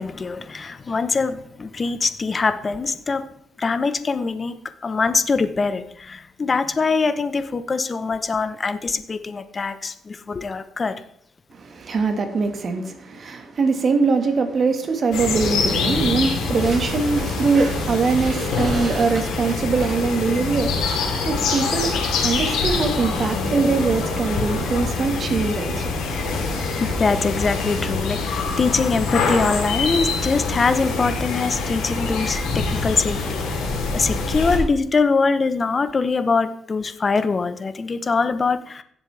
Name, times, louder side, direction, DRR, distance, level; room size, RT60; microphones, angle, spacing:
voice 1, 0.0-3.3 3.6-4.6 4.8-11.0 26.1-33.4 33.9-38.8, left 4 dB, 35° left, 0.9 m, -23 dB
voice 2, 11.5-21.0 21.2-25.8, right 4 dB, 50° right, 1.7 m, -22 dB
sound 1, 15.1-34.6, left 4 dB, 90° left, 3.4 m, -25 dB
16.5 x 7.5 x 3.4 m
cardioid pair, 90°, 0 cm